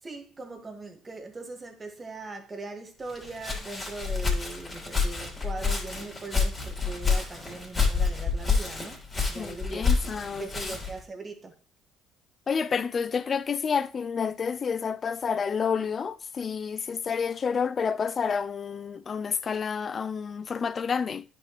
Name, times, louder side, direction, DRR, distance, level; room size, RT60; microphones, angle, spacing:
voice 1, 0.0-9.9 10.4-11.6, right 3 dB, 30° right, 1.8 m, -40 dB
Walk footsteps, 3.1-11.0, left 4 dB, 20° left, 3.2 m, -28 dB
voice 2, 9.4-10.7 12.5-21.2, left 6 dB, 40° left, 0.4 m, -29 dB
10.0 x 5.2 x 3.1 m
supercardioid pair, 70°, 0 cm